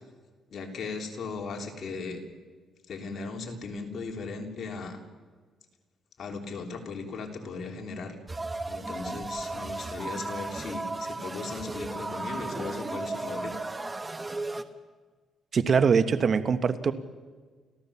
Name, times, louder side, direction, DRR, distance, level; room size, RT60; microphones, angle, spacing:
voice 1, 0.5-2.2 2.9-5.0 6.2-8.2 8.7-13.5, left 4 dB, 55° left, 2 dB, 3.7 m, -37 dB
sound 1, 8.3-14.6, right 2 dB, 20° right, 1.3 m, -35 dB
voice 2, 15.5-16.9, right 6 dB, 50° right, 11 dB, 1.3 m, -23 dB
30.0 x 14.0 x 7.2 m, 1.5 s
cardioid pair, 90°, 0 cm